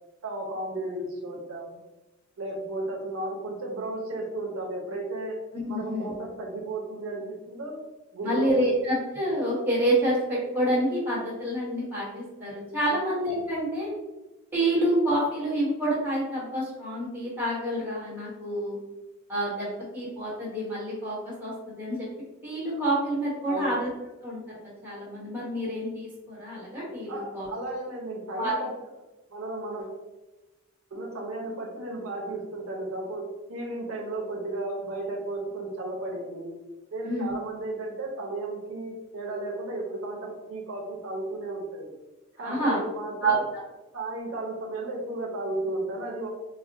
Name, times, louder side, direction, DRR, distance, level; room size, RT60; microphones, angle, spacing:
voice 1, 0.2-1.8 2.4-5.4 5.7-7.8 8.1-8.7 12.8-13.0 23.5-23.8 27.1-28.7 29.3-30.0 30.9-36.5 36.9-41.9 42.4-43.4 43.9-46.3, right 2 dB, 85° right, -1 dB, 0.7 m, -34 dB
voice 2, 5.5-6.1 8.2-13.9 14.5-18.8 19.3-22.1 22.4-23.9 24.2-24.4 24.8-27.5 28.4-28.5 37.0-37.3 42.4-42.8 43.2-43.6, right 1 dB, 10° right, -8 dB, 1.1 m, -28 dB
4.1 x 2.1 x 2.6 m, 1.1 s
head